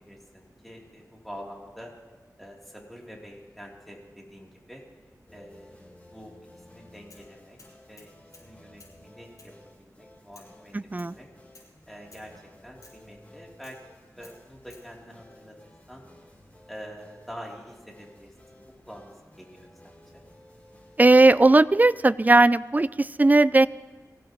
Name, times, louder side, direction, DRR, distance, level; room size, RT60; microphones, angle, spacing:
voice 1, 0.0-1.9 2.4-4.8 5.3-6.3 6.7-7.6 7.9-8.1 8.4-9.5 9.8-10.8 11.1-11.3 11.9-12.3 12.6-13.8 14.1-16.0 16.7-20.2, equal, ahead, -2 dB, 3.2 m, -46 dB
sound 1, 5.3-21.5, left 1 dB, 25° left, 3.4 m, -55 dB
sound 2, 7.1-7.3 7.6-8.5 8.8-9.0 9.4-9.6 10.3-10.5 11.0-11.2 11.5-11.7 12.1-12.3 12.8-13.0 13.6-13.8 14.2-14.9, left 2 dB, 65° left, 5.8 m, -54 dB
voice 2, 10.7-11.2 21.0-23.7, right 2 dB, 25° right, 17 dB, 0.4 m, -18 dB
23.5 x 16.0 x 3.1 m, 1.4 s
wide cardioid pair, 65°, 6 cm